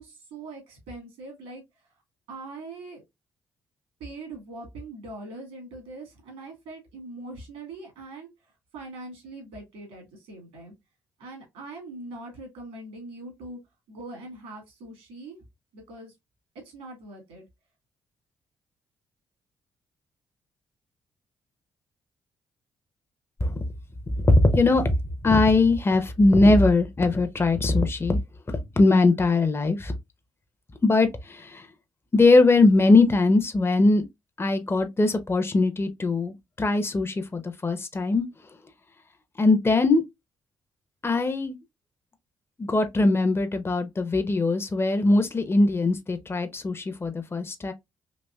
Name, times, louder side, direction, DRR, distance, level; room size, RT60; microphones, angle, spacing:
voice 1, 0.0-1.9 2.3-3.0 4.0-10.7 11.2-13.6 13.9-15.4 15.7-16.1 16.6-17.4, right 2 dB, 75° right, 2.0 m, -42 dB
voice 2, 24.3-24.9 25.2-28.2 28.5-29.9 30.8-31.7 32.1-34.1 34.4-38.2 39.4-40.0 41.0-41.6 42.6-47.7, left 2 dB, 25° left, 0.7 m, -21 dB
4.1 x 3.0 x 2.2 m
hypercardioid pair, 45°, 10 cm